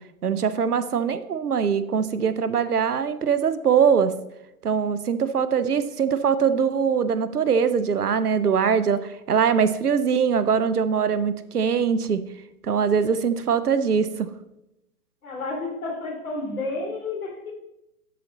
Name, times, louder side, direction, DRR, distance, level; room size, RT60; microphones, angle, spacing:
voice 1, 0.2-4.1 4.6-12.2 12.6-14.3, right 6 dB, 85° right, 13 dB, 0.8 m, -22 dB
voice 2, 15.2-17.5, left 3 dB, 65° left, 0 dB, 3.0 m, -31 dB
12.0 x 4.1 x 3.9 m, 0.90 s
figure-of-eight pair, 125°, 44 cm